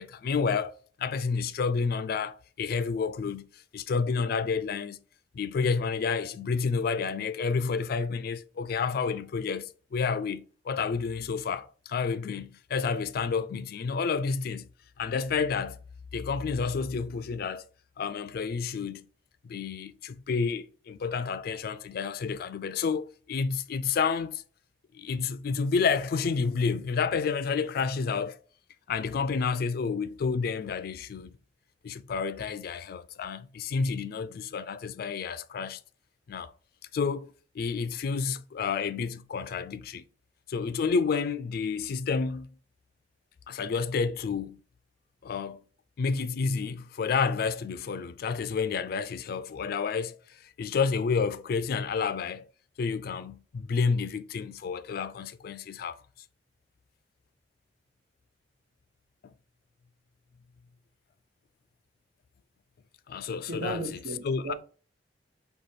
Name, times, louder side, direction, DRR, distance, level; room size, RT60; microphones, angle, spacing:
voice 1, 0.0-5.0 5.3-14.7 15.0-15.8 16.1-17.6 18.0-19.1 19.4-24.4 24.9-28.4 28.9-31.4 31.8-35.8 36.3-36.5 36.9-40.0 40.5-42.5 43.5-44.6 45.2-45.6 46.0-52.5 52.8-56.0 59.2-59.3 63.1-63.8 64.2-64.5, left 5 dB, 55° left, 0.3 m, -30 dB
voice 2, 63.5-64.5, right 2 dB, 80° right, 1.0 m, -35 dB
4.9 x 2.2 x 4.1 m
head